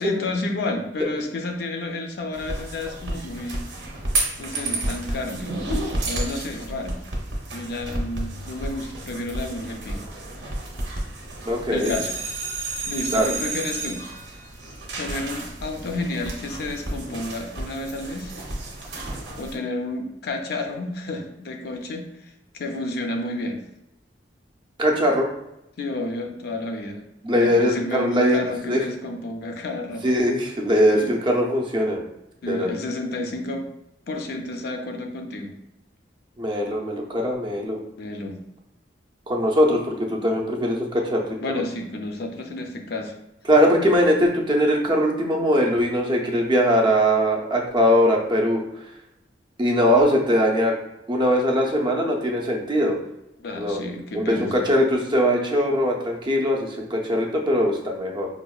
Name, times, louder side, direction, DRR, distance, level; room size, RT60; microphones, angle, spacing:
voice 1, 0.0-3.6 4.4-7.0 7.5-10.1 11.7-12.1 12.8-14.0 15.0-18.3 19.4-23.6 25.8-27.0 27.3-30.1 30.9-31.1 32.4-33.7 34.1-35.5 37.9-38.4 41.4-43.1 53.4-54.6, left 2 dB, 60° left, 4 dB, 0.4 m, -31 dB
sound 1, 2.3-19.5, right 2 dB, 75° right, 0.7 m, -31 dB
voice 2, 11.4-11.9 13.1-13.3 24.8-25.3 27.2-28.4 28.7-28.8 30.0-32.0 32.5-32.7 36.4-37.8 39.3-41.6 43.5-48.6 49.6-50.7 51.1-53.0 53.6-53.9 54.1-58.3, equal, 25° right, 0 dB, 0.5 m, -21 dB
4.8 x 2.1 x 2.3 m, 0.84 s
head